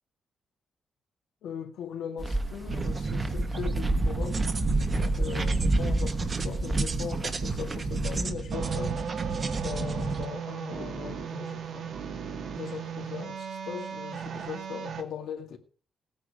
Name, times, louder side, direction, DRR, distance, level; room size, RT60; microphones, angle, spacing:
voice 1, 1.4-4.5 4.9-9.0 9.6-11.9 12.5-15.6, left 8 dB, 85° left, 2.1 m, -39 dB
sound 1, 2.2-8.3, right 1 dB, 20° right, 1.5 m, -30 dB
sound 2, 2.7-10.3, right 4 dB, 40° right, 1.5 m, -31 dB
sound 3, 8.5-15.0, right 7 dB, 70° right, 2.1 m, -36 dB
17.5 x 9.4 x 4.9 m
cardioid pair, 115°, 0 cm